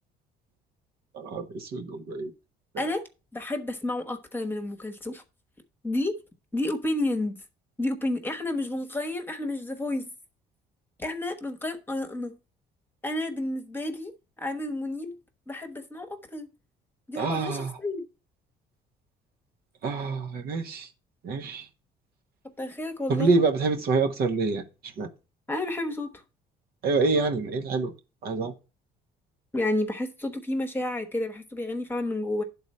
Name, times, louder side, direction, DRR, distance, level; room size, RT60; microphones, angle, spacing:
voice 1, 1.1-2.3 17.2-17.7 19.8-20.9 21.2-21.6 23.1-24.6 25.0-25.1 26.8-27.9 28.2-28.5, right 4 dB, 65° right, 1.3 m, -26 dB
voice 2, 2.8-3.1 3.3-5.2 5.8-6.2 6.5-7.4 7.8-10.1 11.0-12.4 13.0-14.1 14.4-15.2 15.5-16.5 17.1-18.0 22.6-23.3 25.5-26.2 29.5-32.4, left 1 dB, 10° left, 1.2 m, -30 dB
10.5 x 4.1 x 5.4 m
cardioid pair, 110°, 17 cm